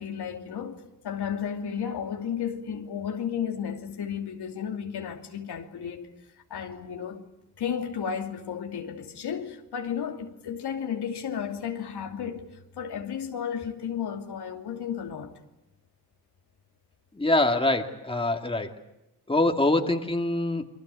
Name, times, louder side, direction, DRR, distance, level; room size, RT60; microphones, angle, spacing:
voice 1, 0.0-6.1 6.5-7.2 7.6-12.5 12.8-15.3, left 8 dB, 85° left, 2.9 m, -33 dB
voice 2, 17.1-18.7 19.3-20.7, left 2 dB, 15° left, 2.5 m, -24 dB
28.0 x 24.0 x 8.4 m
cardioid pair, 95°, 39 cm